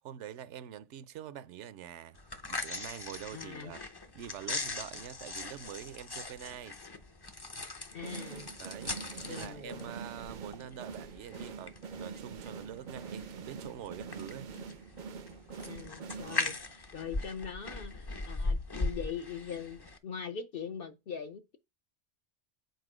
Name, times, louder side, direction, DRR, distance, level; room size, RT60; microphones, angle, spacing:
voice 1, 0.0-2.2 2.5-3.8 4.1-6.8 8.6-8.9 9.2-14.5 16.1-16.5, right 10 dB, 75° right, 0.9 m, -45 dB
sound 1, 2.1-20.0, left 3 dB, 25° left, 0.5 m, -40 dB
voice 2, 3.3-3.7 7.9-8.5 9.3-9.9 14.5-14.6 15.7-21.6, left 7 dB, 55° left, 0.8 m, -42 dB
sound 2, 8.0-16.8, right 5 dB, 55° right, 0.5 m, -45 dB
8.1 x 4.2 x 4.9 m
omnidirectional pair, 1.2 m